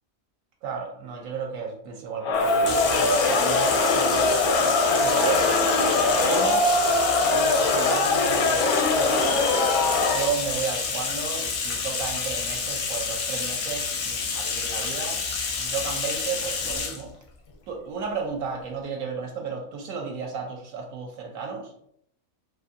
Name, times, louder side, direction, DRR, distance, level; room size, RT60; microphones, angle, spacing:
voice 1, 0.6-4.4 5.0-5.5 6.2-6.7 7.3-9.7 10.1-15.2 15.6-17.1 17.7-21.7, right 5 dB, 70° right, 2 dB, 1.0 m, -33 dB
Crowd, 2.2-10.3, left 3 dB, 80° left, 1.0 m, -22 dB
Bathtub (filling or washing), 2.3-17.0, left 5 dB, 65° left, 0.7 m, -29 dB
2.6 x 2.5 x 2.5 m, 0.71 s
omnidirectional pair, 1.5 m